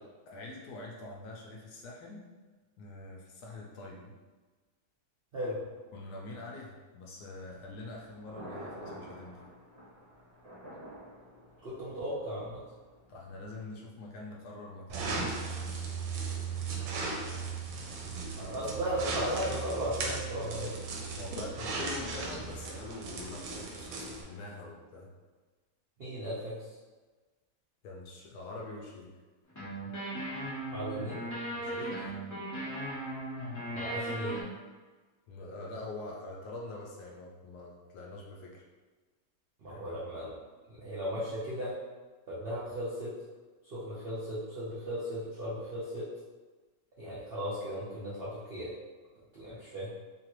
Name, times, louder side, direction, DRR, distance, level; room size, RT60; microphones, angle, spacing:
voice 1, 0.3-2.2 2.8-4.1 5.9-9.4 13.1-15.8 21.2-25.1 27.8-29.1 31.6-32.1 35.3-38.6 39.7-40.0 49.5-49.6, left 2 dB, 70° left, -2 dB, 1.0 m, -44 dB
Thunder, 7.5-13.5, equal, 50° right, 1.2 m, -49 dB
voice 2, 11.6-12.6 18.4-20.8 26.0-26.8 30.7-31.2 33.7-34.3 39.6-40.3 40.7-41.7 42.3-43.1 43.7-46.0 47.0-48.7 49.3-49.9, equal, 65° right, -9 dB, 0.5 m, -36 dB
sound 1, 14.9-24.2, right 4 dB, 85° right, 1.2 m, -37 dB
sound 2, 29.5-34.4, right 1 dB, 30° left, 0.3 m, -37 dB
3.0 x 2.4 x 2.9 m, 1.3 s
omnidirectional pair, 1.9 m